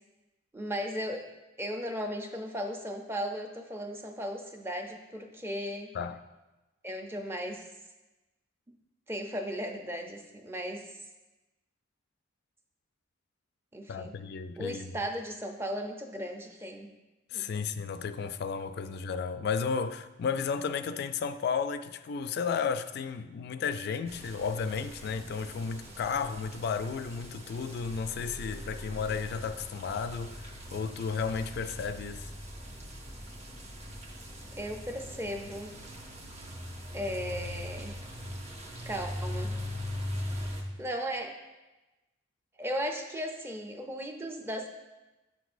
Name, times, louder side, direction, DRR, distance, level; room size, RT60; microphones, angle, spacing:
voice 1, 0.5-1.3 1.6-5.9 6.8-7.6 9.1-10.9 13.7-14.1 14.6-16.9 17.3-17.7 34.6-35.7 36.9-37.9 38.9-39.6 40.4-41.4 42.6-44.7, equal, 10° right, 0.5 m, -36 dB
voice 2, 13.9-15.0 17.3-32.3, left 6 dB, 55° left, 0.3 m, -33 dB
sound 1, 24.1-40.6, equal, 35° right, 0.9 m, -41 dB
8.4 x 6.0 x 2.5 m
head